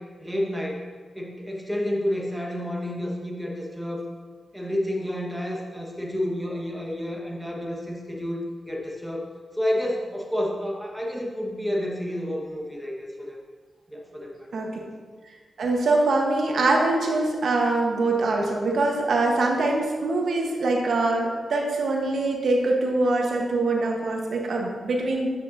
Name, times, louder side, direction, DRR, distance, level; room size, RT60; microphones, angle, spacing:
voice 1, 0.2-0.9 1.1-4.0 4.5-9.3 9.5-13.4 13.9-14.5, left 1 dB, ahead, -2 dB, 1.3 m, -30 dB
voice 2, 15.6-25.3, right 2 dB, 70° right, 0 dB, 1.1 m, -23 dB
8.4 x 6.0 x 2.7 m, 1.6 s
cardioid pair, 75°, 0 cm